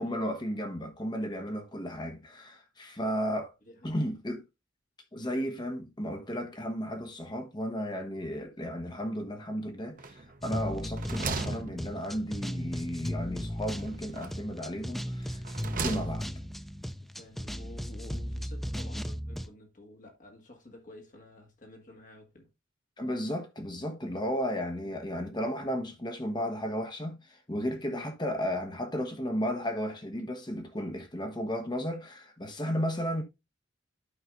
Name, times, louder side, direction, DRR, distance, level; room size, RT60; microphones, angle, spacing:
voice 1, 0.0-3.5 3.8-4.4 5.1-15.4 15.7-16.3 23.0-33.2, equal, 25° left, 1.1 m, -34 dB
voice 2, 3.6-4.0 10.7-10.9 17.2-22.5 24.8-25.0 27.9-28.1, left 1 dB, 45° left, 1.8 m, -51 dB
sound 1, 10.0-10.5 10.8-12.4 13.7-14.5 15.2-16.5, right 4 dB, 45° right, 0.7 m, -38 dB
sound 2, 10.4-19.5, equal, ahead, 0.3 m, -36 dB
12.0 x 4.9 x 2.5 m
head